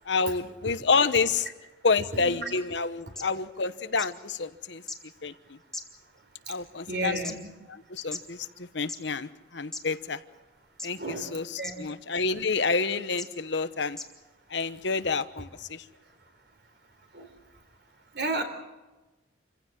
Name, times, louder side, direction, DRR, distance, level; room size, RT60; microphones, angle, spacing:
voice 1, 0.1-1.5 1.8-4.8 5.2-5.6 6.5-7.4 7.7-10.2 10.8-14.0 14.5-15.8, left 4 dB, 70° left, 12 dB, 1.1 m, -28 dB
voice 2, 2.1-2.4 6.9-7.3 11.0-11.8 17.1-17.3 18.1-18.4, right 2 dB, 60° right, 5 dB, 3.9 m, -32 dB
sound 1, 3.2-3.3 4.0-4.1 4.9-5.0 5.7-6.2 6.9-7.3 8.1-8.2 8.8-9.0 9.7-9.8 10.8-11.1 11.6-11.7 12.5-12.6 13.2-13.3 13.9-14.1 14.9-15.0, left 2 dB, 5° left, 1.9 m, -37 dB
27.5 x 16.0 x 7.6 m, 1.1 s
head